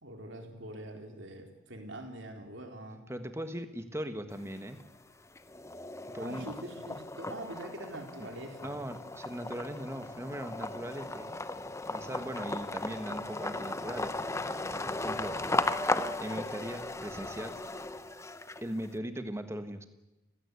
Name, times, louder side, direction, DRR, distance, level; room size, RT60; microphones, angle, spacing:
voice 1, 0.0-3.0 6.2-8.8, right 1 dB, 60° right, 3 dB, 3.9 m, -44 dB
voice 2, 3.1-4.8 6.1-6.5 8.2-8.3 8.6-11.3 11.9-14.2 14.7-15.4 16.2-17.6 18.6-19.8, equal, 15° right, 9 dB, 1.5 m, -39 dB
sound 1, 4.3-5.0 5.4-18.9, left 2 dB, 15° left, 0.8 m, -36 dB
30.0 x 16.5 x 8.4 m, 1.0 s
head